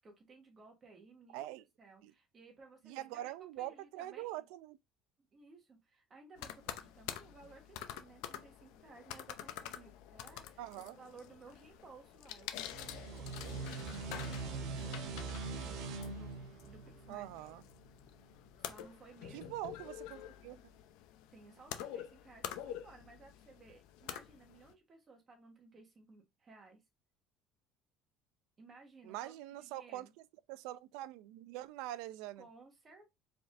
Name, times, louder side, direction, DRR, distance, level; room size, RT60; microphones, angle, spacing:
voice 1, 0.0-4.4 5.3-10.7 11.0-15.1 16.1-17.5 18.6-19.5 21.3-26.8 28.6-30.1 32.4-33.1, right 3 dB, 25° right, 1.3 m, -58 dB
voice 2, 1.3-1.6 2.0-2.1 2.8-4.8 10.6-11.0 17.1-17.6 19.3-20.6 29.0-30.1 30.5-32.4, right 14 dB, 80° right, 0.4 m, -44 dB
sound 1, 6.4-24.7, left 11 dB, 75° left, 0.6 m, -48 dB
sound 2, 12.6-17.9, right 4 dB, 60° right, 0.9 m, -42 dB
4.7 x 3.7 x 2.5 m
cardioid pair, 160°, 0 cm